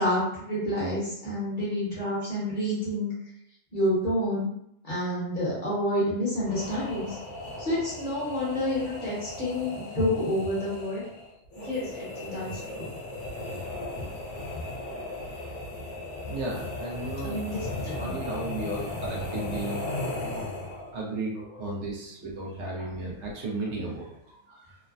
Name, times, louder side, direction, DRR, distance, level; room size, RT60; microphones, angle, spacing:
voice 1, 0.0-3.1 3.7-4.5 4.8-7.2 7.6-11.0 11.6-12.9 17.2-18.1 20.3-20.8, left 1 dB, 40° left, -7 dB, 1.1 m, -29 dB
sound 1, 6.4-21.0, left 2 dB, 75° left, 1.2 m, -36 dB
voice 2, 16.3-17.4 18.0-19.8 20.9-24.8, right 2 dB, 70° right, -2 dB, 0.9 m, -35 dB
3.1 x 2.1 x 2.4 m, 0.75 s
omnidirectional pair, 1.3 m